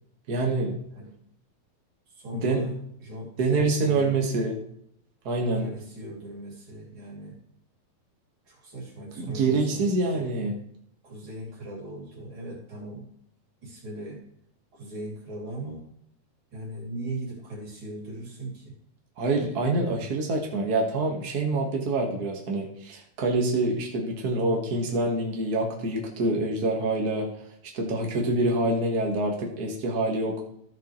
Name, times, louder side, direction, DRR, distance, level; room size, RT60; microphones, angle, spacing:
voice 1, 0.3-0.8 2.3-2.7 3.4-4.6 5.2-5.7 9.2-10.5 19.2-27.3 27.7-30.4, right 2 dB, 85° right, 0 dB, 0.8 m, -26 dB
voice 2, 2.1-4.3 5.5-7.4 8.5-10.3 11.0-13.1 13.6-14.2 14.7-15.9 16.5-18.7, right 1 dB, 35° right, -2 dB, 3.2 m, -39 dB
14.0 x 6.9 x 3.1 m, 0.71 s
omnidirectional pair, 4.3 m